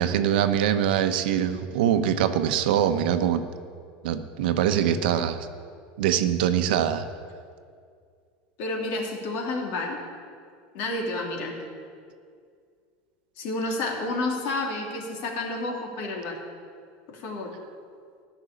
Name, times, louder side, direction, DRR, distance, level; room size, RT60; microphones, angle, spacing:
voice 1, 0.0-3.4 4.0-5.5 6.0-7.0, right 9 dB, 80° right, 9 dB, 0.9 m, -23 dB
voice 2, 8.6-10.0 10.7-11.5 13.4-16.4 17.1-17.5, left 2 dB, 55° left, 0 dB, 2.8 m, -30 dB
14.5 x 6.2 x 10.0 m, 2.2 s
supercardioid pair, 155°, 5 cm